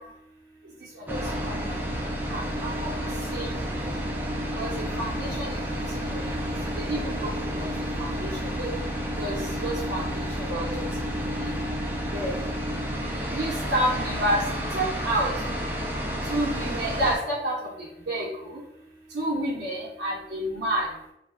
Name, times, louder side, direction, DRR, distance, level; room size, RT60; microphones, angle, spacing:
sound 1, 1.1-17.2, equal, 10° right, 0.3 m, -30 dB
voice 1, 2.3-2.9 3.3-3.5 3.8-3.9 4.6-5.6 5.9-6.2 6.8-7.7 8.0-8.7 9.2-9.4 9.6-10.7 11.0-11.1 11.4-11.5 12.1-12.3 13.3-14.4 14.7-15.3 16.3-17.6 18.1-18.6 19.1-20.9, right 1 dB, 80° right, -6 dB, 0.5 m, -29 dB
2.5 x 2.3 x 2.4 m, 0.84 s
head